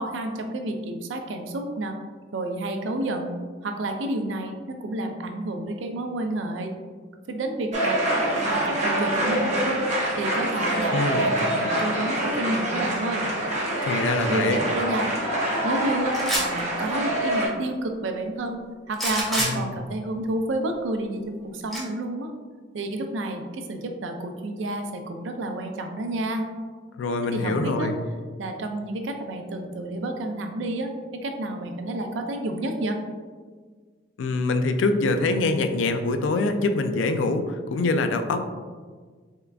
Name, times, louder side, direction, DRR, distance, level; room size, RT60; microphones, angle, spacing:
voice 1, 0.0-2.0 2.3-3.4 3.6-6.7 7.3-8.0 8.3-9.8 10.2-13.3 14.3-15.1 15.6-22.3 22.7-26.5 27.3-27.9 28.4-30.9 31.2-33.0, right 1 dB, 85° right, 5 dB, 0.4 m, -30 dB
sound 1, 7.7-17.5, right 1 dB, 40° right, 0.8 m, -25 dB
voice 2, 10.9-11.3 13.8-14.6 19.4-19.8 27.0-28.0 34.2-38.4, left 3 dB, 90° left, 8 dB, 0.3 m, -24 dB
sound 2, 16.1-16.6 18.9-19.5 21.7-21.8, equal, ahead, 0.7 m, -25 dB
3.6 x 3.3 x 2.3 m, 1.5 s
head